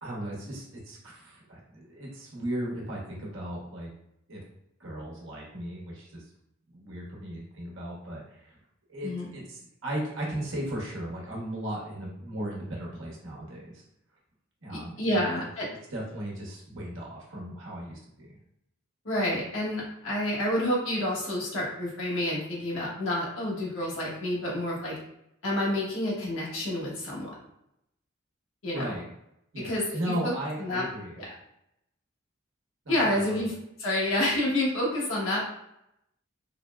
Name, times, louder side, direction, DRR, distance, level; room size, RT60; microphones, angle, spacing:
voice 1, 0.0-3.9 4.3-4.4 4.8-6.2 6.7-8.6 8.9-13.8 14.6-15.5 15.9-18.3 28.7-29.1 29.5-31.2 32.8-33.5, right 1 dB, 80° right, -3 dB, 1.0 m, -36 dB
voice 2, 14.7-15.7 19.0-24.9 25.4-27.3 28.6-29.0 29.5-30.3 30.6-30.8 31.2-31.3 32.9-33.5 33.8-35.4, left 1 dB, 80° left, -5 dB, 1.1 m, -29 dB
3.9 x 2.1 x 2.3 m, 0.80 s
head